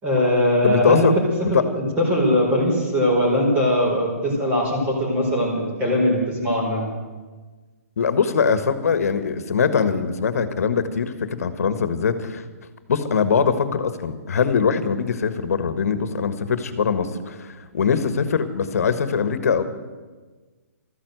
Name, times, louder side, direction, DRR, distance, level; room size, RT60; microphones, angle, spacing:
voice 1, 0.0-1.1 1.5-6.9, equal, 15° right, -1 dB, 4.7 m, -21 dB
voice 2, 0.6-1.1 1.5-1.6 8.0-12.4 12.9-19.6, left 6 dB, 65° left, 11 dB, 1.5 m, -22 dB
13.5 x 12.5 x 8.0 m, 1.3 s
hypercardioid pair, 150°, 9 cm